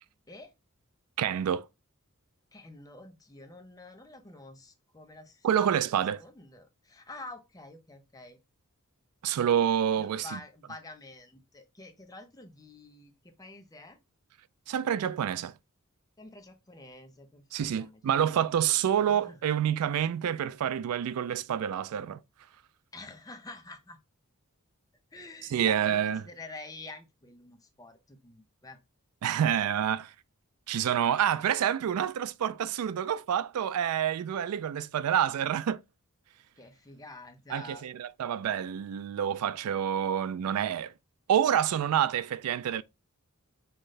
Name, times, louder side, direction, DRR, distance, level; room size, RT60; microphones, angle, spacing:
voice 1, 1.2-1.7 5.4-6.2 9.2-10.4 14.7-15.5 17.5-22.2 25.5-26.2 29.2-30.1 30.7-35.8 37.5-40.9 41.3-42.8, right 9 dB, 80° right, 0.3 m, -28 dB
voice 2, 2.5-8.4 10.0-14.0 16.2-18.0 18.3-19.4 22.9-24.0 25.1-28.8 36.6-37.8, left 2 dB, 15° left, 0.7 m, -48 dB
5.7 x 2.6 x 3.2 m
head